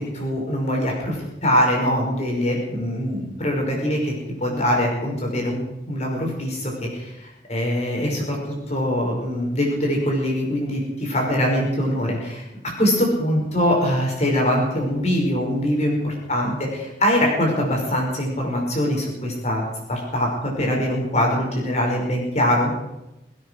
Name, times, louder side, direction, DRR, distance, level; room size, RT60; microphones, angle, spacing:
voice 1, 0.0-4.1 4.4-5.6 5.9-12.4 12.8-19.6 19.9-22.7, equal, 35° left, 0 dB, 5.6 m, -23 dB
23.0 x 9.3 x 6.5 m, 0.92 s
head